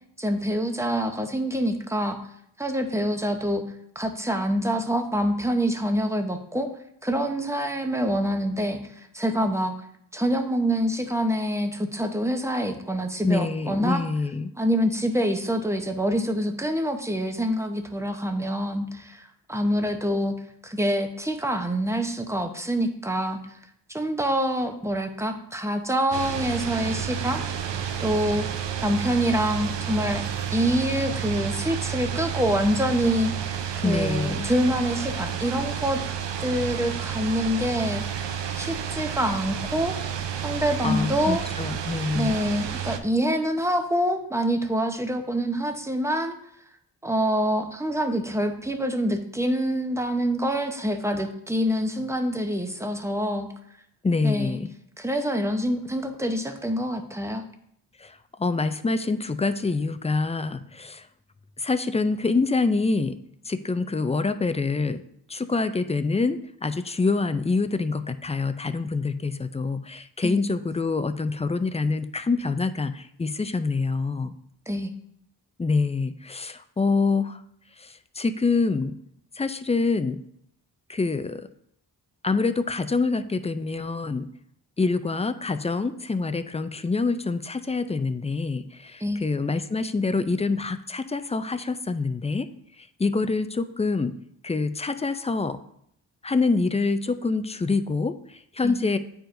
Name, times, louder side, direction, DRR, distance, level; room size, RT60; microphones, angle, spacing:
voice 1, 0.2-2.2 2.6-3.6 4.0-6.7 7.0-8.8 9.1-9.7 10.1-14.0 14.6-20.3 20.6-23.4 23.9-27.4 28.0-28.5 28.8-30.2 30.5-36.0 36.4-40.0 40.4-41.4 42.1-46.4 47.0-53.5 54.2-54.6 55.0-57.4 70.2-70.4 74.7-74.9 89.0-89.2 98.6-98.8, equal, 5° right, 5 dB, 0.8 m, -26 dB
voice 2, 13.2-14.5 33.8-34.5 40.5-42.4 54.0-54.7 58.0-61.1 61.6-63.2 63.5-65.0 65.3-74.3 75.6-77.4 77.8-79.0 79.4-80.2 80.9-81.5 82.2-84.3 84.8-92.5 92.8-94.1 94.4-95.6 96.2-99.0, left 3 dB, 15° left, 11 dB, 0.3 m, -26 dB
sound 1, 26.1-43.0, right 8 dB, 80° right, 0.6 m, -31 dB
8.9 x 4.6 x 2.6 m, 0.71 s
cardioid pair, 55°, 43 cm